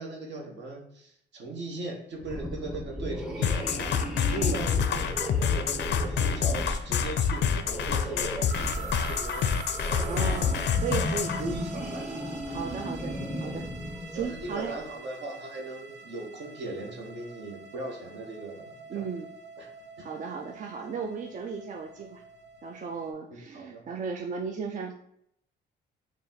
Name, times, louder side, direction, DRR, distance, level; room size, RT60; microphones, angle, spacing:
voice 1, 0.0-9.5 9.8-10.1 11.4-12.1 14.1-19.0 19.6-19.7 23.3-24.0, right 2 dB, 60° right, 0 dB, 1.2 m, -39 dB
sound 1, 2.2-14.7, equal, ahead, 0.8 m, -36 dB
sound 2, 3.4-11.4, left 7 dB, 65° left, 0.4 m, -27 dB
sound 3, 8.5-23.1, right 4 dB, 85° right, 0.7 m, -45 dB
voice 2, 10.1-11.4 12.5-14.7 18.9-19.3 20.0-22.2 22.6-24.9, right 5 dB, 40° right, 2 dB, 0.4 m, -35 dB
3.9 x 2.4 x 3.9 m, 0.73 s
cardioid pair, 90°, 20 cm